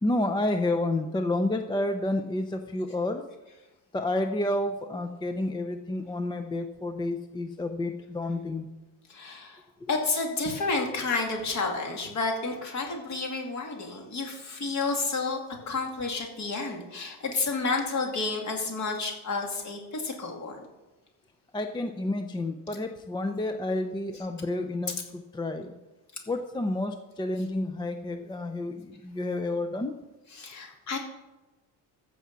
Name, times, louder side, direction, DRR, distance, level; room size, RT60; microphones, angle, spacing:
voice 1, 0.0-3.3 3.9-8.7 9.8-9.9 21.5-25.7 26.3-29.9, left 2 dB, 10° left, 7 dB, 0.4 m, -30 dB
voice 2, 9.1-9.6 9.9-20.6 30.4-31.0, left 3 dB, 40° left, 2 dB, 2.4 m, -30 dB
14.0 x 5.7 x 7.4 m, 1.1 s
cardioid pair, 155°, 42 cm